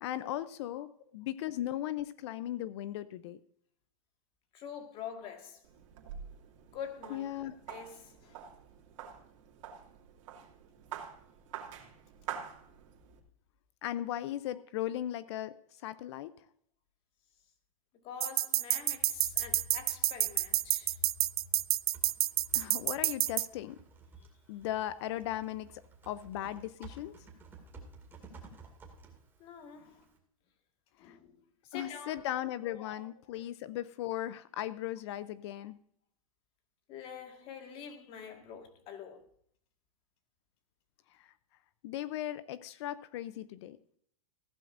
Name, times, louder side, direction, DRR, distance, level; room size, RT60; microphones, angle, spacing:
voice 1, 0.0-3.4 7.1-7.6 13.8-16.3 22.5-23.8 24.5-27.2 31.0-31.1 31.7-35.8 41.2-41.3 41.8-43.8, left 12 dB, 50° left, 0.6 m, -37 dB
voice 2, 4.5-5.6 6.7-8.5 17.9-21.0 29.4-30.1 31.0-32.2 32.6-33.4 36.9-39.3, left 7 dB, 30° left, 1.9 m, -46 dB
sound 1, 5.6-13.2, right 9 dB, 60° right, 2.4 m, -47 dB
sound 2, 18.2-23.5, right 13 dB, 85° right, 0.4 m, -28 dB
Typing, 19.1-30.2, right 4 dB, 10° right, 2.3 m, -55 dB
15.0 x 12.0 x 2.6 m
supercardioid pair, 155°, 18 cm